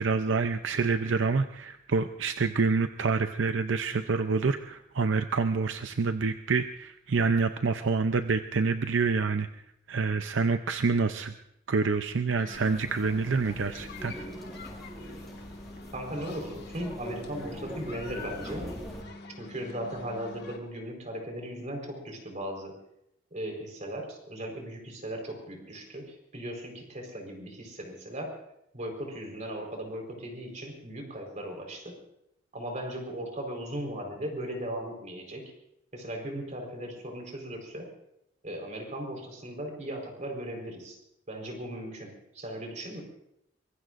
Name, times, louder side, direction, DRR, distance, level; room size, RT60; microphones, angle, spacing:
voice 1, 0.0-9.5 9.9-11.3 11.7-14.1, right 4 dB, 75° right, 8 dB, 0.6 m, -27 dB
sound 1, 12.4-20.6, left 2 dB, 60° left, 2.0 m, -45 dB
sound 2, 12.5-19.0, equal, ahead, 5.4 m, -43 dB
voice 2, 15.9-18.7 19.4-22.8 23.3-28.3 28.7-32.0 32.5-35.5 35.9-37.9 38.4-41.0 41.3-43.0, right 1 dB, 40° right, 2 dB, 4.4 m, -37 dB
24.0 x 22.5 x 2.6 m, 0.79 s
head